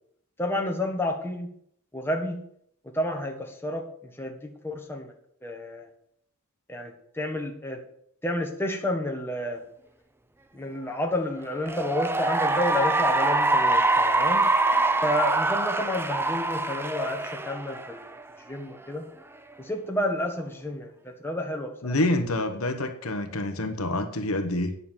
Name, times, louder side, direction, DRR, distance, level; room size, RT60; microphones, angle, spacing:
voice 1, 0.4-1.5 1.9-2.4 2.8-5.1 5.4-5.9 6.7-7.8 8.2-9.6 10.5-14.5 15.0-18.2 18.5-19.0 19.6-21.9, left 1 dB, 10° left, 1 dB, 1.6 m, -30 dB
Cheering / Applause, 11.5-18.2, right 2 dB, 10° right, 0.5 m, -24 dB
voice 2, 21.8-24.8, left 1 dB, 70° left, 7 dB, 1.2 m, -27 dB
9.7 x 6.8 x 7.4 m, 0.68 s
head